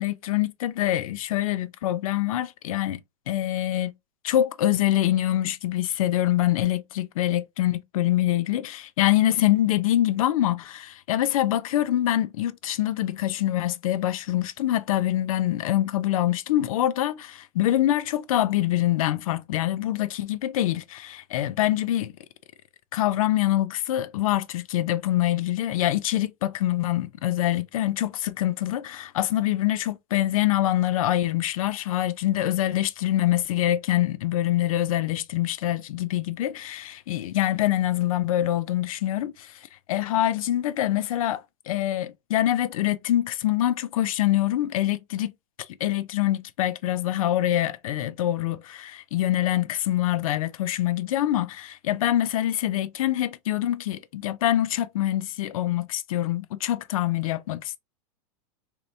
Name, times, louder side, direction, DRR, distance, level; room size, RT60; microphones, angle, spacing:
voice 1, 0.0-3.0 3.3-3.9 4.2-22.1 22.9-39.6 39.9-45.3 45.8-57.8, left 13 dB, 75° left, 0.4 m, -25 dB
3.1 x 2.9 x 2.7 m
supercardioid pair, 175°, 18 cm